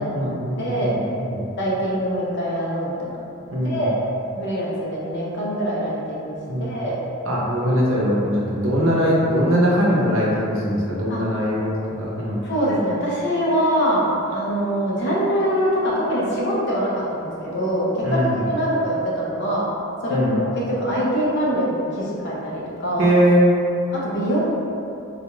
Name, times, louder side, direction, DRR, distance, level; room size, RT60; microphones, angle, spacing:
voice 1, 0.0-1.4 3.5-3.9 6.5-6.8 7.3-12.5 18.0-18.4 20.1-20.4 23.0-23.5, equal, 65° right, -5 dB, 0.7 m, -21 dB
voice 2, 0.6-1.0 1.6-3.1 3.6-3.9 4.3-7.0 11.1-11.2 12.4-19.7 20.0-23.1 23.9-24.4, equal, 55° left, -6 dB, 0.7 m, -23 dB
3.5 x 2.3 x 2.9 m, 2.7 s
head